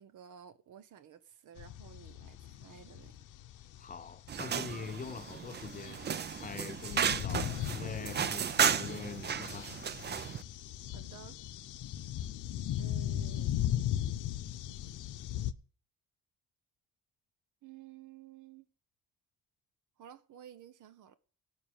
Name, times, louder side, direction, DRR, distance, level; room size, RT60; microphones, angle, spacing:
voice 1, 0.0-3.2 10.9-11.4 12.8-13.6 17.6-18.7 20.0-21.1, right 9 dB, 65° right, 1.1 m, -53 dB
sound 1, 1.6-15.5, left 11 dB, 65° left, 0.8 m, -38 dB
voice 2, 3.8-9.8, left 6 dB, 25° left, 0.5 m, -44 dB
sound 2, 4.3-10.4, right 8 dB, 30° right, 0.5 m, -34 dB
18.0 x 6.0 x 7.2 m
cardioid pair, 115°, 34 cm